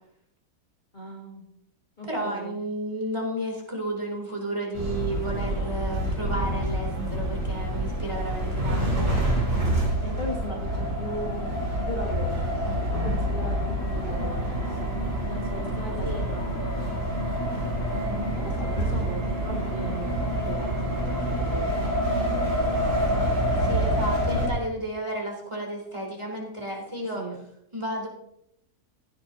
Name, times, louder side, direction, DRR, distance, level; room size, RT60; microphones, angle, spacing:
voice 1, 0.9-1.4 2.0-2.6 10.0-11.6 11.9-16.9 18.0-23.4 27.2-27.4, equal, 30° left, -3 dB, 1.6 m, -38 dB
voice 2, 2.1-9.0 16.0-16.2 23.6-27.2 27.7-28.1, right 1 dB, 15° right, -2 dB, 3.2 m, -32 dB
sound 1, 4.7-24.5, right 1 dB, 35° right, 3.7 m, -27 dB
16.0 x 9.6 x 2.8 m, 0.75 s
omnidirectional pair, 1.7 m